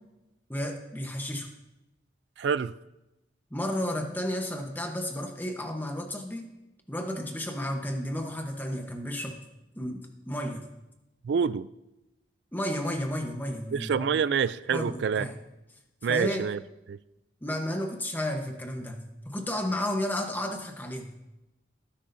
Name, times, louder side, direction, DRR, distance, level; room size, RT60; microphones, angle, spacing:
voice 1, 0.5-1.5 3.5-6.5 6.9-9.4 9.7-10.7 12.5-14.2 14.7-15.4 16.0-16.5 17.4-21.1, left 1 dB, 10° left, 4 dB, 1.0 m, -32 dB
voice 2, 2.4-2.7 11.2-11.7 13.7-15.3 16.0-16.6 16.9-17.0, right 6 dB, 60° right, 17 dB, 0.3 m, -27 dB
18.0 x 10.0 x 2.7 m, 0.95 s
head